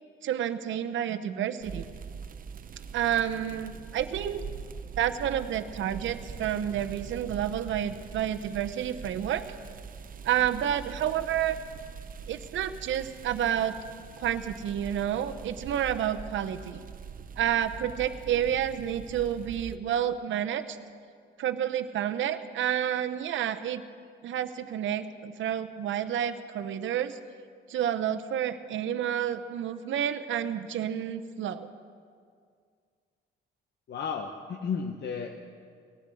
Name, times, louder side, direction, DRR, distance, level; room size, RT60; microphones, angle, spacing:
voice 1, 0.2-1.8 2.9-4.4 5.0-9.4 10.2-11.6 12.3-13.8 14.2-16.8 17.4-20.8 21.4-23.8 24.2-27.2 27.7-31.7, right 10 dB, 75° right, 10 dB, 0.9 m, -29 dB
sound 1, 1.6-19.8, right 6 dB, 45° right, 0.7 m, -43 dB
voice 2, 33.9-35.3, left 6 dB, 60° left, 4 dB, 1.1 m, -33 dB
18.0 x 10.5 x 7.8 m, 2.2 s
cardioid pair, 90°, 20 cm